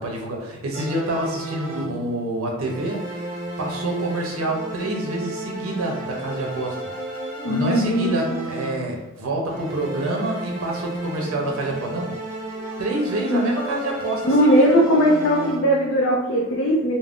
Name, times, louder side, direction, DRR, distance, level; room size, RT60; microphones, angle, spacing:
voice 1, 0.0-3.3 3.6-6.8 7.5-12.2 12.8-14.8, right 1 dB, 85° right, -1 dB, 0.6 m, -27 dB
sound 1, 0.7-2.2 2.6-9.1 9.5-15.9, right 1 dB, 40° right, 0.6 m, -33 dB
voice 2, 7.4-8.4 13.3-13.6 14.2-17.0, equal, 60° left, -3 dB, 0.4 m, -19 dB
2.4 x 2.0 x 3.4 m, 0.99 s
head